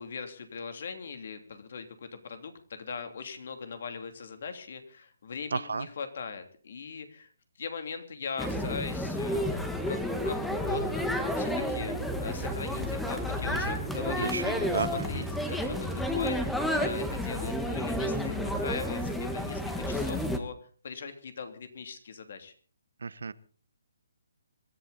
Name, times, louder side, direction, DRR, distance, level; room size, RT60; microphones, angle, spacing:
voice 1, 0.0-7.3 7.6-10.0 10.2-16.4 16.8-20.5 20.8-22.5, left 5 dB, 55° left, 8 dB, 2.9 m, -40 dB
voice 2, 5.5-5.9 14.2-15.2 23.0-23.3, right 4 dB, 80° right, 17 dB, 0.9 m, -33 dB
sound 1, 8.4-20.4, equal, 5° left, 1.5 m, -31 dB
26.0 x 11.5 x 4.1 m, 0.41 s
hypercardioid pair, 160°, 0 cm